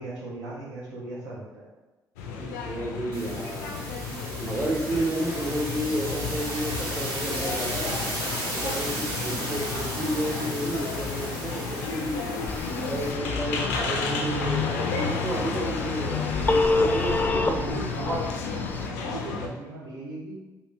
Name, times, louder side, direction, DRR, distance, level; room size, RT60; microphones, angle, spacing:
voice 1, 0.0-1.7 9.2-9.5 12.9-13.0 17.5-18.3 18.8-20.4, right 2 dB, 90° right, -6 dB, 0.6 m, -37 dB
sound 1, 2.2-19.5, left 4 dB, 90° left, 0.4 m, -32 dB
voice 2, 2.3-3.7 4.3-8.0 8.5-12.2 12.9-17.7, right 1 dB, 30° right, -2 dB, 1.0 m, -31 dB
sound 2, 3.1-13.1, right 1 dB, 65° right, 1.0 m, -35 dB
Telephone, 12.5-18.9, left 2 dB, 20° left, 0.4 m, -29 dB
3.1 x 2.7 x 3.0 m, 1.2 s
hypercardioid pair, 45°, 9 cm